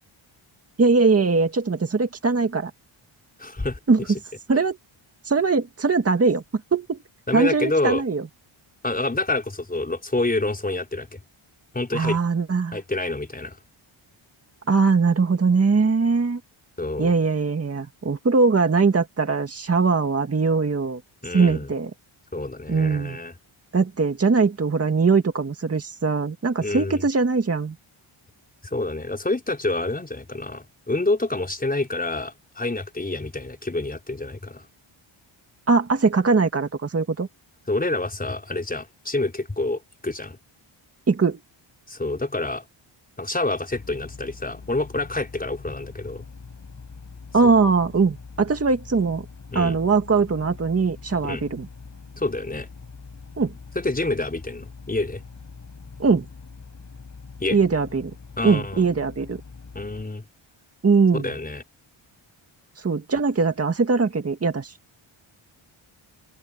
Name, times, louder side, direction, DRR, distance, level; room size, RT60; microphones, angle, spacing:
voice 1, 0.8-2.7 3.9-4.0 4.5-4.8 5.3-6.4 6.7-7.0 7.3-8.3 11.9-12.8 14.7-16.4 17.0-21.0 21.3-21.9 22.7-23.2 23.7-27.8 35.7-37.3 41.1-41.4 47.3-49.3 49.6-51.7 53.4-53.5 56.0-56.3 57.5-58.1 58.4-59.4 60.8-61.3 62.8-64.7, right 4 dB, 30° right, 2.1 m, -21 dB
voice 2, 3.4-3.8 7.3-8.0 8.8-11.2 11.7-12.2 12.7-13.6 16.8-17.1 21.2-21.7 22.3-23.3 26.6-27.0 28.7-34.6 37.7-40.4 41.9-42.6 43.2-46.2 49.5-49.8 51.2-51.4 52.2-52.7 53.7-55.2 57.4-57.6 58.4-58.9 59.7-60.2 61.1-61.6, left 2 dB, 15° left, 5.7 m, -27 dB
sound 1, 43.7-60.0, left 4 dB, 35° left, 5.8 m, -43 dB
open air
wide cardioid pair, 170°, 50 cm